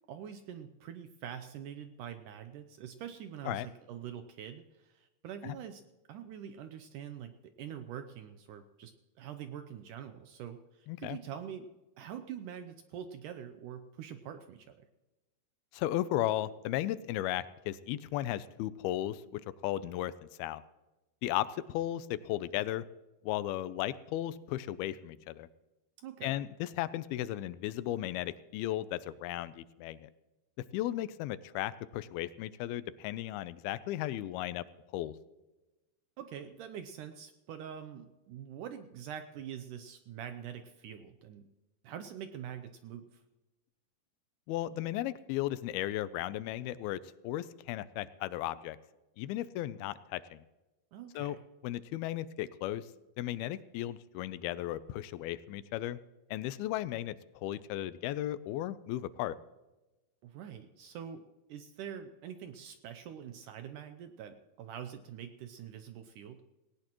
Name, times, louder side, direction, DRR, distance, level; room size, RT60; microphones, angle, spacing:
voice 1, 0.1-5.8 6.1-11.7 12.0-14.8 26.0-26.4 36.2-41.5 41.8-43.2 50.9-51.4 60.2-61.2 61.5-66.4, right 9 dB, 80° right, 9 dB, 1.9 m, -45 dB
voice 2, 10.9-11.2 15.7-20.1 20.4-20.6 21.2-22.8 23.2-25.5 26.2-30.1 30.7-34.6 34.9-35.2 44.5-48.8 49.2-50.4 51.2-51.4 51.6-52.9 53.2-56.0 56.3-59.4, left 14 dB, 85° left, 16 dB, 2.5 m, -35 dB
18.0 x 18.0 x 3.0 m, 1.1 s
omnidirectional pair, 4.3 m